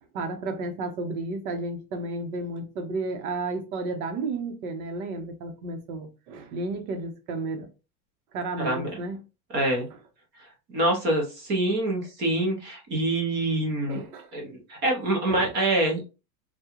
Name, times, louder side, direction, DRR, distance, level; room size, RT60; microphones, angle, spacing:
voice 1, 0.1-7.7 8.3-9.2 9.7-9.8 13.9-14.3 15.3-15.5, right 3 dB, 65° right, 0.9 m, -32 dB
voice 2, 8.6-8.9 9.5-9.9 10.7-14.0 14.3-16.1, right 1 dB, 25° right, 0.6 m, -25 dB
3.6 x 2.3 x 2.9 m
supercardioid pair, 170°, 46 cm